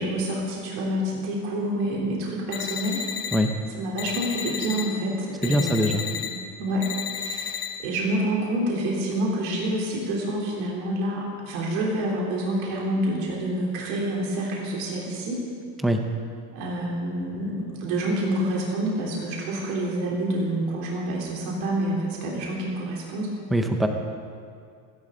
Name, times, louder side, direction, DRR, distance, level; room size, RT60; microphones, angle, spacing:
voice 1, 0.0-3.4 3.7-7.6 7.8-15.4 16.5-23.4, right 1 dB, 60° right, -3 dB, 3.6 m, -28 dB
sound 1, 2.5-3.4 4.0-4.8 5.4-6.3 6.8-7.7, left 8 dB, 50° left, 1.9 m, -32 dB
voice 2, 5.4-6.0 15.8-16.0 23.5-23.9, equal, ahead, 4 dB, 0.6 m, -22 dB
28.0 x 11.5 x 3.8 m, 2.2 s
supercardioid pair, 155°, 43 cm